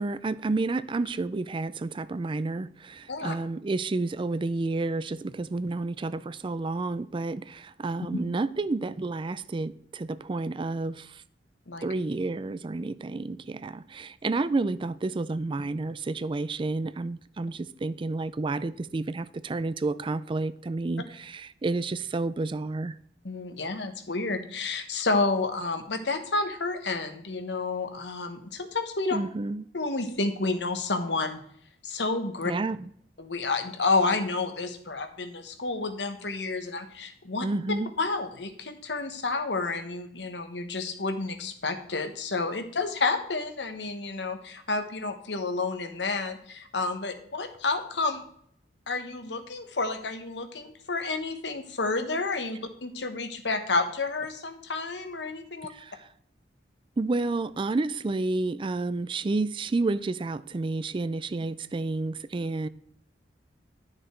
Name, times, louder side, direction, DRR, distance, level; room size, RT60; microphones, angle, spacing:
voice 1, 0.0-11.2 11.8-23.0 29.1-29.7 32.4-32.8 37.4-37.9 55.7-56.1 57.0-62.7, right 3 dB, 30° right, 0.4 m, -30 dB
voice 2, 23.2-29.2 29.7-31.4 31.8-32.5 33.2-37.4 38.0-48.2 48.9-55.7, left 3 dB, 80° left, 1.3 m, -30 dB
11.0 x 6.5 x 4.5 m
head